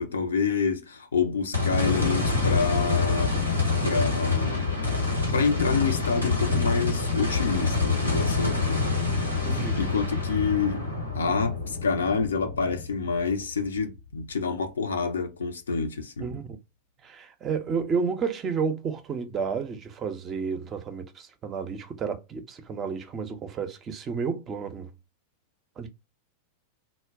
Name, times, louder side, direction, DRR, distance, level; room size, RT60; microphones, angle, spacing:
voice 1, 0.0-3.4 3.8-4.7 5.3-8.9 9.5-10.8 11.1-16.3, left 5 dB, 70° left, 0.5 m, -27 dB
sound 1, 1.5-13.9 14.3-14.4 17.8-17.9, left 4 dB, 90° left, 1.0 m, -26 dB
voice 2, 9.4-9.9 16.2-16.6 17.0-24.9 25.8-25.9, right 5 dB, 25° right, 0.5 m, -31 dB
2.2 x 2.0 x 3.5 m
figure-of-eight pair, 90°, 0 cm